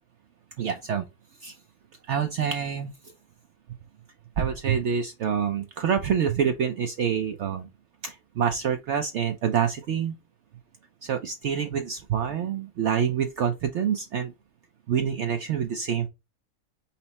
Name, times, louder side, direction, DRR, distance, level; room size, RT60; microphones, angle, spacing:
voice 1, 0.6-1.1 1.4-1.6 2.1-2.9 4.4-7.7 8.0-10.2 11.0-14.3 14.9-16.1, right 8 dB, 65° right, 0.8 m, -26 dB
5.5 x 2.0 x 3.9 m
omnidirectional pair, 1.5 m